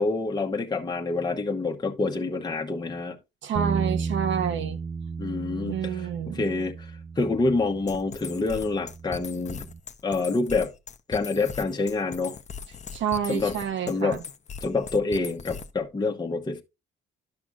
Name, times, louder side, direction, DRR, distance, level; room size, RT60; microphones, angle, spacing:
voice 1, 0.0-3.2 5.2-6.1 6.3-9.7 10.0-10.7 11.1-12.4 13.3-13.5 13.9-14.2 14.6-16.6, left 3 dB, 20° left, 1.0 m, -27 dB
voice 2, 3.4-4.8 5.6-6.5 12.9-14.2, right 8 dB, 70° right, 1.3 m, -29 dB
Bass guitar, 3.5-9.8, right 5 dB, 30° right, 0.6 m, -34 dB
sound 1, 7.9-15.9, left 6 dB, 35° left, 0.7 m, -39 dB
11.5 x 6.0 x 2.4 m
cardioid pair, 90°, 20 cm